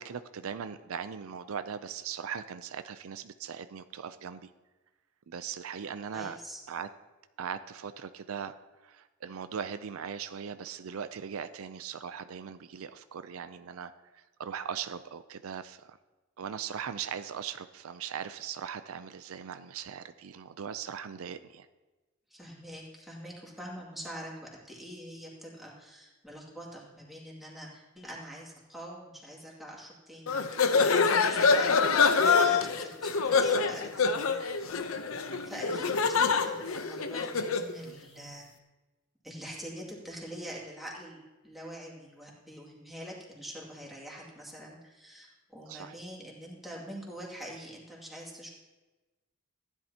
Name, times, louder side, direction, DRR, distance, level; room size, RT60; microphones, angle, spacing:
voice 1, 0.0-4.5 5.3-6.4 6.7-6.9 7.4-8.5 8.8-13.9 14.4-16.0 16.4-21.7 35.3-35.5 45.7-45.9, right 7 dB, 85° right, 11 dB, 0.5 m, -39 dB
voice 2, 6.1-6.6 22.3-30.4 30.7-34.3 34.6-34.8 35.4-38.5 39.2-48.5, equal, ahead, -4 dB, 2.3 m, -45 dB
sound 1, 30.3-37.7, left 5 dB, 85° left, 0.8 m, -25 dB
15.5 x 10.5 x 2.9 m, 1.2 s
head